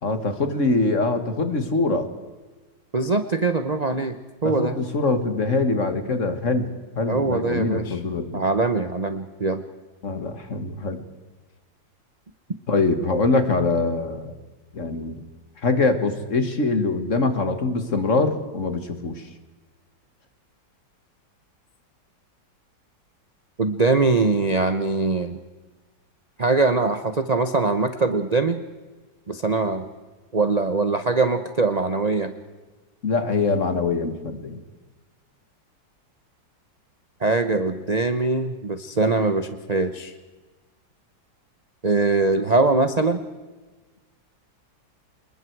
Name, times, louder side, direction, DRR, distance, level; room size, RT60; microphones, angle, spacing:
voice 1, 0.0-2.1 4.4-8.4 10.0-11.1 12.7-14.3 14.7-15.2 15.6-19.2 33.0-34.6, left 3 dB, 45° left, 8 dB, 2.0 m, -23 dB
voice 2, 2.9-4.2 4.4-4.8 7.1-8.0 8.3-9.6 23.6-25.4 26.4-28.6 29.3-29.9 30.3-32.3 37.2-40.1 41.8-43.2, right 3 dB, 30° right, 9 dB, 0.7 m, -22 dB
26.5 x 21.5 x 4.7 m, 1.3 s
omnidirectional pair, 2.0 m